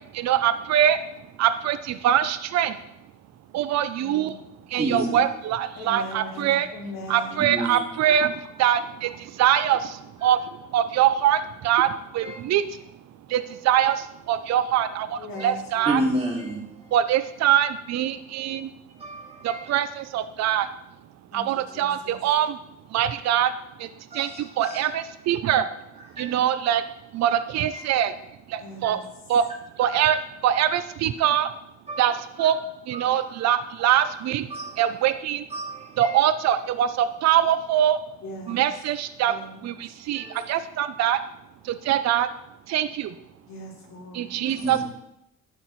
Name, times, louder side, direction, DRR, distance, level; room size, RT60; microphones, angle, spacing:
voice 1, 0.1-1.0 1.4-2.8 3.5-4.3 4.7-6.7 7.1-10.4 10.7-12.8 13.3-16.0 16.9-18.7 19.4-20.7 21.3-22.6 22.9-23.5 23.8-25.7 26.2-26.8 27.1-28.1 28.5-29.0 29.3-29.4 29.8-31.5 32.0-32.6 32.9-34.5 34.8-35.4 36.0-38.0 38.5-41.2 41.6-42.3 42.7-43.2 44.1-44.9, right 10 dB, 60° right, 12 dB, 0.5 m, -23 dB
voice 2, 4.0-4.3 5.7-7.4 15.2-15.9 21.3-21.4 21.7-22.1 28.6-29.0 38.2-38.6 39.3-39.5 43.5-44.3, equal, 65° left, -5 dB, 3.0 m, -39 dB
voice 3, 4.7-5.2 7.1-7.9 12.2-12.4 15.3-15.5 15.8-16.7 19.0-19.7 24.1-24.8 26.1-26.4 28.8-28.9 29.8-30.0 31.9-32.2 32.5-32.6 32.9-33.2 34.5-34.8 35.5-36.2 38.5-38.6 40.1-40.5 44.5-44.9, right 1 dB, 20° right, -2 dB, 2.3 m, -31 dB
11.5 x 4.3 x 3.1 m, 0.82 s
cardioid pair, 90°, 30 cm